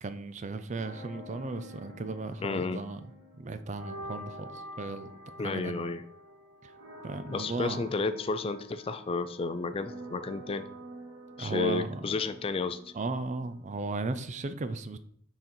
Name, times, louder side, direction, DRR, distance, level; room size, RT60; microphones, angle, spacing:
voice 1, 0.0-3.0 3.4-5.1 5.4-5.8 6.6-6.7 7.0-7.8 11.4-12.2 12.9-15.0, right 3 dB, 40° right, 0.4 m, -36 dB
sound 1, 0.7-13.6, equal, 85° right, 2.1 m, -48 dB
voice 2, 2.4-2.8 5.4-6.0 7.3-10.7 11.4-12.9, left 3 dB, 30° left, 0.4 m, -32 dB
6.4 x 4.1 x 4.4 m
head